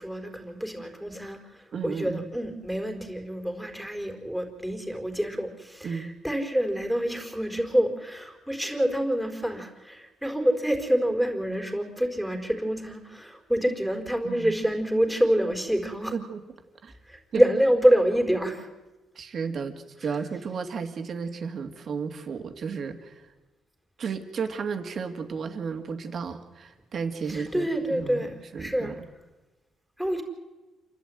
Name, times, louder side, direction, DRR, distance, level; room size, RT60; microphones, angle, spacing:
voice 1, 0.0-16.1 17.1-18.7 27.3-29.0 30.0-30.2, equal, ahead, 3 dB, 4.4 m, -27 dB
voice 2, 1.7-2.2 5.8-6.1 14.2-14.5 16.1-16.4 16.8-16.9 17.3-17.4 19.1-23.2 24.0-29.1, right 5 dB, 55° right, 6 dB, 2.4 m, -33 dB
28.0 x 12.0 x 9.4 m, 1.2 s
cardioid pair, 90°, 0 cm